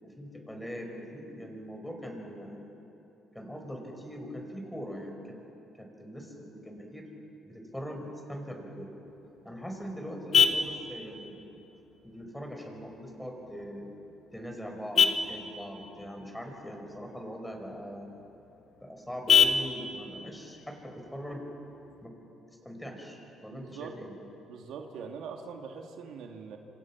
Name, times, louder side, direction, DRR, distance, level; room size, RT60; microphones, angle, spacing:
voice 1, 0.0-2.6 3.3-5.4 5.8-7.0 7.4-8.9 9.4-11.4 12.0-13.9 14.3-18.1 18.8-21.4 22.0-22.1 22.6-23.2 23.4-24.1, equal, 5° left, 2 dB, 5.2 m, -41 dB
Vehicle horn car horn honking, 9.1-22.1, left 6 dB, 50° left, 1.5 m, -31 dB
voice 2, 23.5-24.0 24.5-26.6, right 6 dB, 75° right, 3 dB, 2.1 m, -42 dB
27.0 x 26.0 x 6.0 m, 2.9 s
cardioid pair, 95°, 0 cm